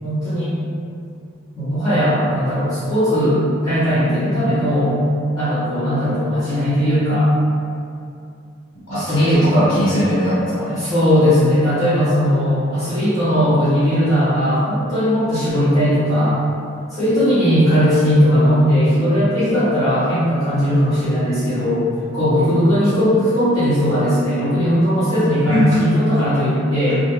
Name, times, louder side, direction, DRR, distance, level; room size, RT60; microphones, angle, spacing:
voice 1, 0.0-0.5 1.5-5.0 5.4-7.3 8.9-9.4 10.8-16.4 16.9-21.8 22.1-27.0, equal, 15° left, -15 dB, 0.9 m, -18 dB
voice 2, 8.9-10.8 25.4-25.6, equal, 55° left, -11 dB, 0.6 m, -19 dB
2.4 x 2.2 x 3.0 m, 2.4 s
head